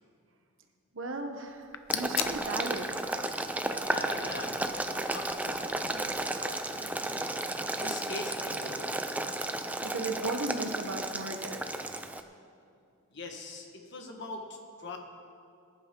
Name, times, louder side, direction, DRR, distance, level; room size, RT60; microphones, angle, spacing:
voice 1, 0.9-2.9 9.8-11.7, right 2 dB, 65° right, 5 dB, 1.2 m, -36 dB
sound 1, 1.5-6.7, left 10 dB, 70° left, 0.6 m, -41 dB
Boiling, 1.9-12.2, right 2 dB, 5° right, 0.4 m, -33 dB
voice 2, 3.8-6.1 6.4-7.3 7.8-8.9 13.1-15.0, left 2 dB, 55° left, 2 dB, 1.6 m, -42 dB
21.0 x 10.5 x 3.9 m, 2.4 s
head